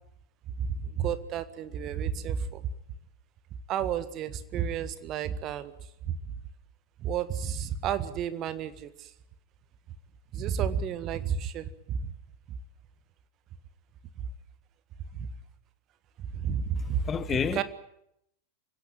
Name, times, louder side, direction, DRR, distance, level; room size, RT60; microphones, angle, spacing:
voice 1, 0.9-2.6 3.7-5.7 6.1-6.2 7.0-9.1 10.3-12.1 12.5-12.6 15.2-15.3 16.3-17.0 17.5-17.6, right 8 dB, 35° right, 1.6 m, -31 dB
voice 2, 16.8-17.6, left 7 dB, 20° left, 1.0 m, -30 dB
25.0 x 17.0 x 9.0 m
figure-of-eight pair, 90°, 0 cm